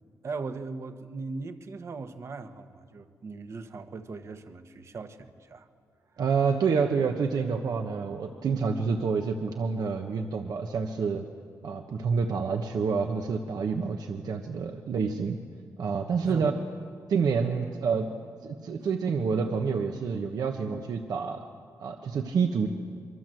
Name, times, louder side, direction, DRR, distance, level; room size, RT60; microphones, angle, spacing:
voice 1, 0.2-5.7 16.3-16.6 18.8-18.9, right 4 dB, 45° right, 8 dB, 1.2 m, -39 dB
voice 2, 6.2-11.2 11.6-15.4 15.8-16.5 17.1-18.1 18.4-21.4 21.8-22.7, right 5 dB, 70° right, 4 dB, 1.3 m, -28 dB
26.0 x 24.0 x 7.8 m, 2.1 s
wide cardioid pair, 155°, 7 cm